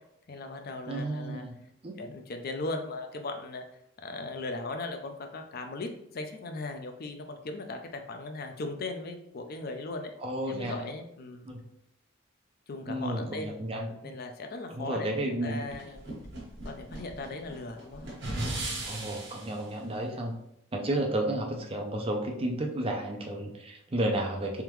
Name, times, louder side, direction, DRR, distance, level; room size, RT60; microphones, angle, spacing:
voice 1, 0.3-1.5 2.0-3.6 4.0-10.1 10.5-11.5 12.7-13.6 14.0-15.1 15.4-16.1 16.6-18.1, left 2 dB, 50° left, 5 dB, 0.4 m, -38 dB
voice 2, 0.9-1.6 1.8-2.0 10.2-10.8 11.4-11.6 12.9-13.9 14.7-15.6 18.8-20.3 20.7-24.6, right 1 dB, 30° right, 2 dB, 0.6 m, -32 dB
sound 1, 15.7-19.6, right 1 dB, 60° right, 1.3 m, -37 dB
3.5 x 3.4 x 3.1 m, 0.77 s
head